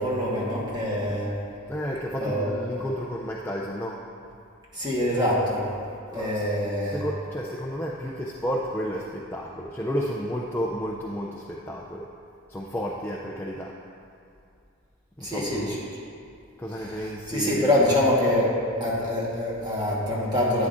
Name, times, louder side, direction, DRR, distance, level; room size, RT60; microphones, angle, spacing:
voice 1, 0.0-1.4 2.2-2.5 4.7-5.7 6.1-7.0 15.2-15.8 17.3-20.7, left 1 dB, 20° right, -5 dB, 1.4 m, -25 dB
voice 2, 1.7-4.0 6.1-6.5 6.8-12.1 12.5-13.8 15.2-15.9 16.6-17.9, equal, 10° left, -3 dB, 0.4 m, -31 dB
11.5 x 8.7 x 2.6 m, 2.4 s
head